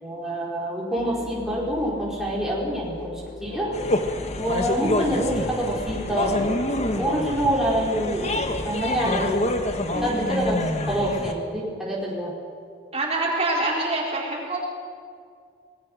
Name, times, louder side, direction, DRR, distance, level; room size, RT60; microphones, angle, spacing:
voice 1, 0.0-3.1 3.4-3.7 4.4-6.4 6.9-9.6 10.0-10.6 10.9-12.3, equal, ahead, -5 dB, 4.1 m, -26 dB
sound 1, 1.0-9.0, left 1 dB, 70° left, 2.2 m, -38 dB
sound 2, 3.7-11.3, left 1 dB, 35° left, 1.6 m, -27 dB
voice 2, 12.9-14.6, right 2 dB, 35° right, -2 dB, 4.2 m, -26 dB
26.0 x 20.0 x 6.4 m, 2.2 s
head